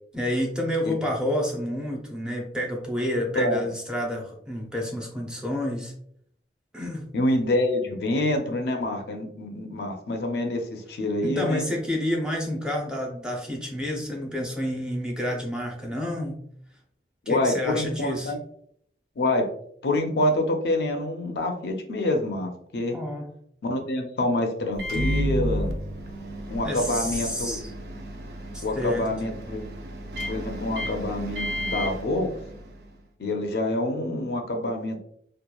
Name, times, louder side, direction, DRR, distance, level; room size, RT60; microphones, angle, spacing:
voice 1, 0.1-5.9 6.7-7.1 11.2-16.4 17.3-18.3 22.9-23.3 26.6-27.7 28.5-29.1, left 1 dB, 5° right, 0 dB, 0.5 m, -29 dB
voice 2, 7.1-11.6 17.3-18.4 19.2-19.5 19.8-23.0 23.6-25.7 26.5-27.6 28.6-29.6 30.3-32.3 33.2-35.0, left 1 dB, 65° left, 4 dB, 0.4 m, -26 dB
Microwave oven, 24.7-32.9, equal, 60° right, 0.4 m, -32 dB
2.9 x 2.2 x 2.2 m, 0.66 s
head